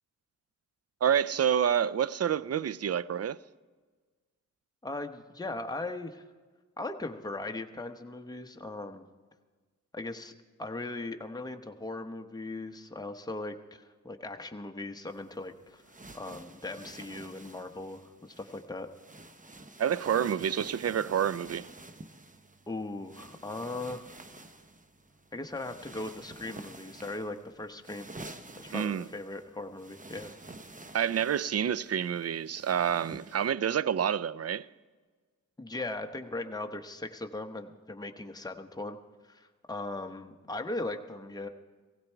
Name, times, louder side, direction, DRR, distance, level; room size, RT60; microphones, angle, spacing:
voice 1, 1.0-3.4 19.8-21.7 28.7-29.1 30.9-34.7, right 8 dB, 50° right, 0.5 m, -28 dB
voice 2, 4.8-6.2 6.8-9.0 9.9-10.3 10.6-15.8 16.1-18.9 22.7-24.1 25.3-28.1 28.6-30.3 35.6-39.0 39.3-41.5, left 2 dB, 10° left, 1.0 m, -38 dB
sound 1, 15.1-33.5, right 2 dB, 25° right, 0.9 m, -49 dB
16.5 x 15.5 x 4.5 m
cardioid pair, 50°, 31 cm